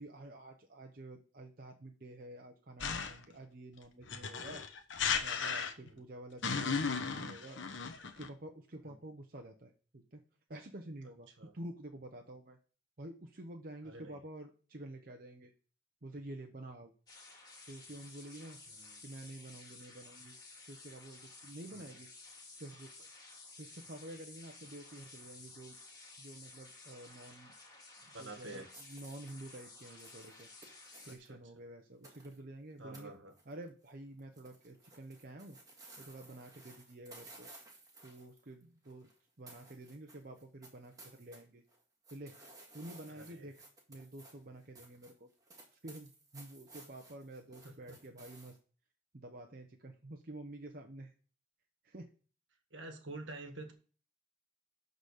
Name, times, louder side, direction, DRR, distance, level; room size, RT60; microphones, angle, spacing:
voice 1, 0.0-4.6 5.2-7.6 8.0-10.2 10.5-11.3 11.5-12.6 13.0-15.5 16.0-16.9 17.7-18.6 19.0-20.4 20.7-22.1 22.6-23.1 23.6-25.8 26.2-27.5 28.2-30.5 31.0-33.1 33.5-35.6 36.0-37.5 38.0-39.1 39.4-41.6 42.1-42.4 42.7-43.6 43.9-45.3 45.7-48.6 49.1-51.1 51.8-52.1, right 1 dB, 45° right, 2 dB, 0.8 m, -49 dB
sound 1, 2.8-3.3 4.1-6.0 6.4-8.3, left 5 dB, 65° left, 1.0 m, -35 dB
voice 2, 13.8-14.2 18.7-19.1 21.7-22.0 28.0-28.7 31.0-31.4 32.8-33.3 43.1-43.5 47.6-48.0 52.7-53.7, right 2 dB, 70° right, 6 dB, 1.5 m, -49 dB
sound 2, 17.1-31.2, left 3 dB, 20° left, 2.0 m, -54 dB
sound 3, 28.7-31.3 32.0-32.4 32.9-33.0 33.3-33.9 34.2-39.2 39.5-41.4 41.7-48.6, right 2 dB, 20° right, 2.0 m, -57 dB
12.0 x 4.1 x 6.5 m, 0.40 s
head